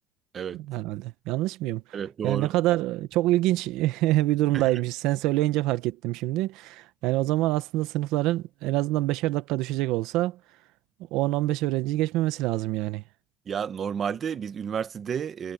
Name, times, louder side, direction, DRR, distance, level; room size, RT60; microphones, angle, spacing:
voice 1, 0.5-1.8 2.2-10.4 11.1-13.0, right 16 dB, 75° right, 0.8 m, -26 dB
voice 2, 1.9-2.5 4.5-4.7 13.5-15.5, right 7 dB, 30° right, 0.9 m, -31 dB
cardioid pair, 165°, 0 cm